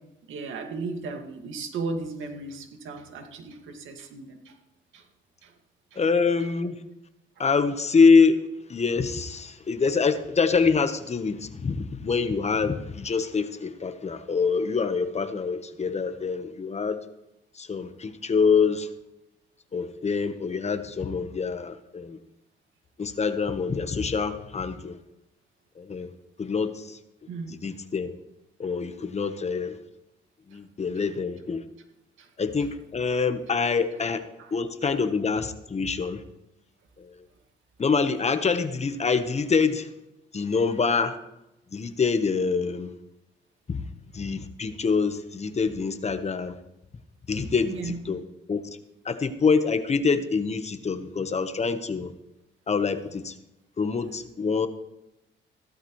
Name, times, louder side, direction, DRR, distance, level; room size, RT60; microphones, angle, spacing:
voice 1, 0.3-4.5 4.9-5.0 5.4-5.5 5.9-6.0 27.3-27.6 32.2-32.3 34.4-34.5 34.8-35.0 47.6-48.0, right 3 dB, 80° right, 4 dB, 2.1 m, -36 dB
voice 2, 6.0-6.8 7.4-8.4 8.7-17.0 17.6-18.9 19.7-22.2 23.0-25.0 25.8-26.1 26.4-27.0 27.5-28.1 28.6-29.8 30.5-31.6 32.4-36.2 37.0-37.2 37.8-39.9 40.3-41.2 41.7-42.9 43.7-43.8 44.1-46.5 47.3-48.2 48.5-48.6 49.0-52.1 52.7-53.3 53.8-54.7, left 5 dB, 35° left, 9 dB, 1.2 m, -25 dB
16.0 x 13.0 x 3.2 m, 0.89 s
cardioid pair, 90°, 20 cm